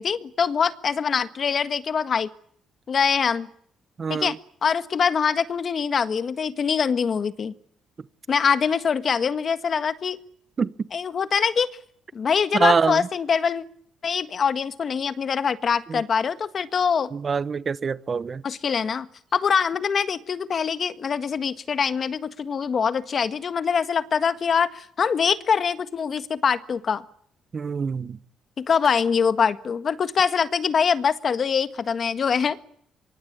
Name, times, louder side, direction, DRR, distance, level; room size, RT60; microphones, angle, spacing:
voice 1, 0.0-2.3 2.9-3.5 4.1-4.3 4.6-7.5 8.3-10.2 10.9-11.7 12.1-13.6 14.0-17.1 18.4-19.1 19.3-27.0 28.6-32.6, left 6 dB, 50° left, 1.6 m, -23 dB
voice 2, 4.0-4.3 10.6-10.7 12.5-13.0 15.9-16.0 17.1-18.4 27.5-28.2, right 5 dB, 40° right, 1.0 m, -24 dB
24.5 x 23.5 x 8.6 m
cardioid pair, 90°, 0 cm